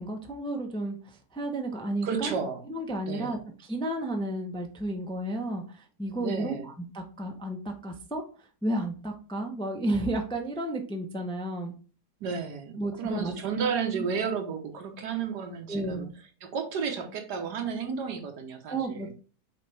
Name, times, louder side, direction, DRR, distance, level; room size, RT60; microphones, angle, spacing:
voice 1, 0.0-2.4 2.7-8.2 8.6-11.7 12.8-13.3 13.9-14.0 15.7-16.1 18.7-19.1, right 1 dB, 5° left, 3 dB, 0.4 m, -32 dB
voice 2, 2.0-2.6 3.1-3.4 6.2-6.7 12.2-16.1 16.4-19.1, right 6 dB, 90° right, 5 dB, 1.7 m, -32 dB
6.5 x 4.3 x 3.4 m, 0.38 s
omnidirectional pair, 1.7 m